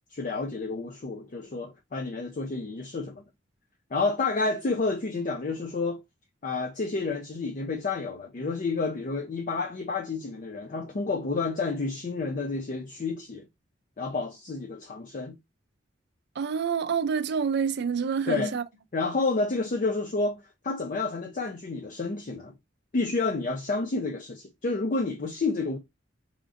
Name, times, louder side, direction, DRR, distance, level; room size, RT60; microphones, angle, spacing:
voice 1, 0.1-3.2 3.9-6.0 6.4-13.4 14.0-15.4 18.3-18.5 18.9-22.5 22.9-25.8, left 3 dB, 45° left, 0.5 m, -30 dB
voice 2, 16.4-18.6, right 6 dB, 60° right, 0.4 m, -27 dB
3.6 x 3.5 x 2.5 m
head